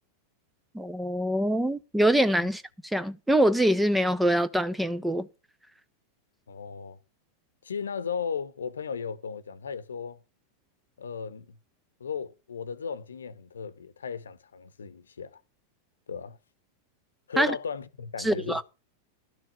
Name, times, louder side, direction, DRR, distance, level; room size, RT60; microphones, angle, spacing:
voice 1, 0.7-2.6 2.9-5.3 17.4-17.5 18.2-18.6, right 1 dB, 5° right, 0.7 m, -24 dB
voice 2, 6.5-7.0 7.6-10.2 11.0-11.6 12.0-15.4 16.1-16.4 17.3-18.6, left 6 dB, 70° left, 0.9 m, -36 dB
12.0 x 6.3 x 5.8 m
figure-of-eight pair, 90°, 0 cm